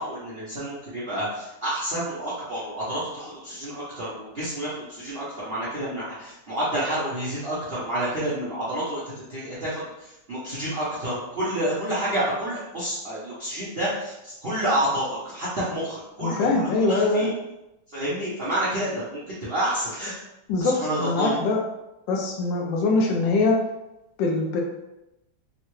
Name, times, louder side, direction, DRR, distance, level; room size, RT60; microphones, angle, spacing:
voice 1, 0.0-17.3 17.9-20.1 20.6-21.4, right 1 dB, 60° right, -9 dB, 0.6 m, -29 dB
voice 2, 16.2-17.3 20.5-21.6 22.1-23.6 24.2-24.6, left 3 dB, 75° left, 0 dB, 1.2 m, -23 dB
3.7 x 2.1 x 3.0 m, 0.92 s
omnidirectional pair, 2.1 m